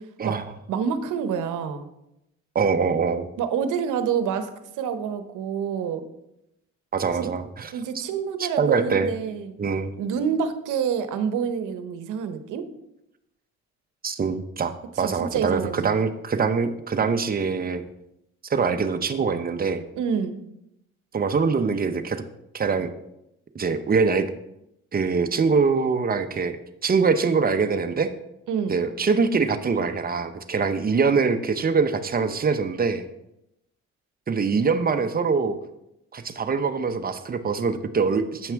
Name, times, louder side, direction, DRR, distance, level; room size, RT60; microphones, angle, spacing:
voice 1, 0.7-1.9 3.4-4.5 4.8-6.0 7.1-7.3 7.7-9.6 10.0-12.7 15.0-15.9 20.0-20.4 28.5-28.8, right 7 dB, 85° right, 10 dB, 0.9 m, -27 dB
voice 2, 2.5-3.3 6.9-7.7 8.4-9.1 9.6-10.0 14.0-17.8 18.5-19.8 21.1-22.2 22.5-22.9 23.5-24.3 24.9-26.6 26.8-28.1 28.7-33.1 34.3-35.6 36.1-38.5, right 5 dB, 30° right, 8 dB, 0.8 m, -23 dB
8.1 x 5.8 x 4.6 m, 0.84 s
cardioid pair, 90°, 30 cm